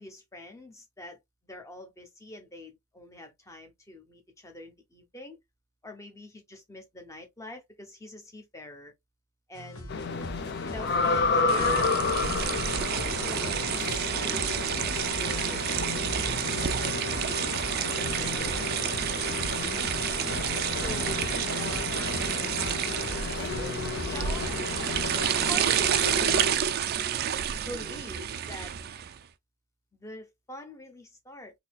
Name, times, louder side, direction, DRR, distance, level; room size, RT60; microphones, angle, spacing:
voice 1, 0.0-5.4 5.8-8.9 9.5-10.0 10.6-12.6 12.9-15.6 16.1-18.6 19.1-20.2 20.5-23.7 24.0-24.6 25.5-26.4 27.6-28.7 30.0-31.5, left 1 dB, 15° left, 0.8 m, -44 dB
sound 1, 9.5-25.2, left 1 dB, 70° left, 1.2 m, -41 dB
sound 2, 9.9-26.5, left 4 dB, 50° left, 0.5 m, -32 dB
sound 3, 11.5-29.2, right 9 dB, 45° right, 0.3 m, -30 dB
3.9 x 2.8 x 2.3 m
head